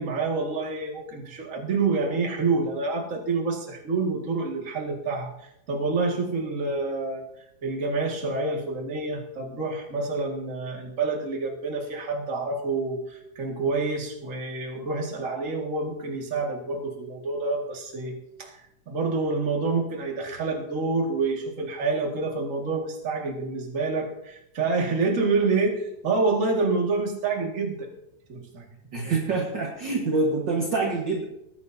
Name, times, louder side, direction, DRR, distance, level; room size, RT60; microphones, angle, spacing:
voice 1, 0.0-5.3 5.7-7.2 7.6-18.6 18.9-27.9 28.3-28.6 29.0-29.1, right 3 dB, 30° right, 0 dB, 1.7 m, -27 dB
voice 2, 28.9-31.2, right 3 dB, 50° right, 0 dB, 1.5 m, -26 dB
19.5 x 10.5 x 2.7 m, 0.83 s
omnidirectional pair, 3.7 m